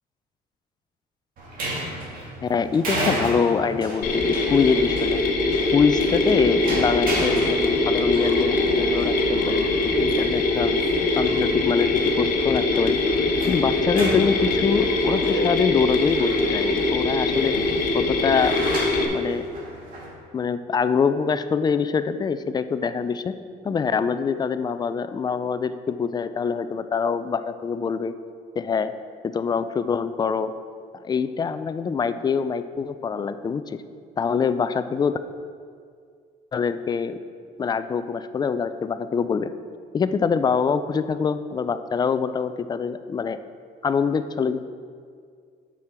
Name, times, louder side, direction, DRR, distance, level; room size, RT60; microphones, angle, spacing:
sound 1, 1.4-20.1, right 1 dB, 55° right, 2.2 m, -34 dB
voice 1, 2.4-5.2 5.7-9.7 10.0-10.7 11.2-13.0 13.5-17.6 17.9-18.6 19.0-19.4 20.3-23.4 23.6-28.2 28.6-28.9 29.3-30.5 31.0-33.8 34.2-35.2 36.5-37.2 37.6-39.5 39.9-43.4 43.8-44.7, left 6 dB, 25° left, 11 dB, 0.4 m, -24 dB
Mechanisms, 4.0-19.1, left 2 dB, 55° left, 1.1 m, -22 dB
8.6 x 6.2 x 4.4 m, 2.1 s
cardioid pair, 110°, 17 cm